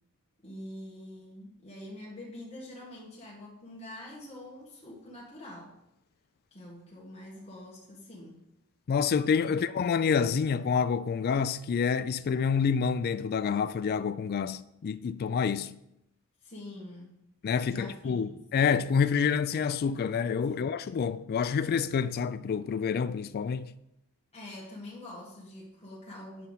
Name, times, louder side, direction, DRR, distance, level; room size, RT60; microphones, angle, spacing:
voice 1, 0.4-5.8 6.5-8.4 16.4-17.2 17.6-18.4 20.5-20.6 24.3-26.5, left 1 dB, 30° left, 1.5 m, -45 dB
voice 2, 8.9-15.8 17.4-23.7, left 6 dB, 45° left, 0.3 m, -28 dB
9.2 x 5.6 x 4.0 m
head